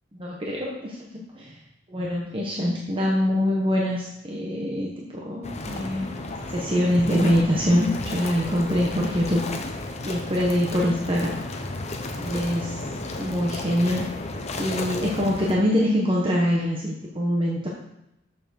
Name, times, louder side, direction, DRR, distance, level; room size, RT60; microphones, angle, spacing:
voice 1, 0.2-1.6 1.9-6.1 6.5-9.4 10.0-11.3 12.2-12.8 13.2-14.0 14.6-17.7, equal, 25° right, -3 dB, 1.2 m, -24 dB
sound 1, 5.4-15.5, left 2 dB, 35° left, 0.9 m, -33 dB
7.1 x 5.8 x 6.4 m, 0.87 s
head